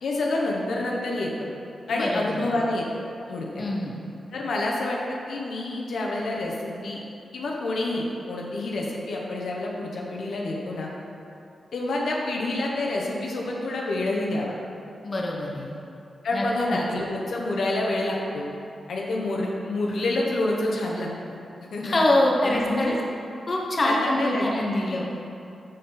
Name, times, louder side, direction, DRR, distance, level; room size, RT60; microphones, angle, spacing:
voice 1, 0.0-1.5 1.9-2.8 3.3-3.6 4.3-7.0 7.3-10.9 11.7-14.5 16.2-18.5 18.9-21.1 21.7-21.9 22.4-23.0 23.8-25.0, left 2 dB, 80° left, -2 dB, 1.2 m, -28 dB
voice 2, 1.9-2.5 3.6-3.9 15.0-15.7 16.3-16.4 16.7-16.8 21.8-23.0 23.5-25.1, left 1 dB, 45° left, -2 dB, 1.1 m, -24 dB
13.0 x 4.4 x 3.9 m, 2.6 s
cardioid pair, 70°, 0 cm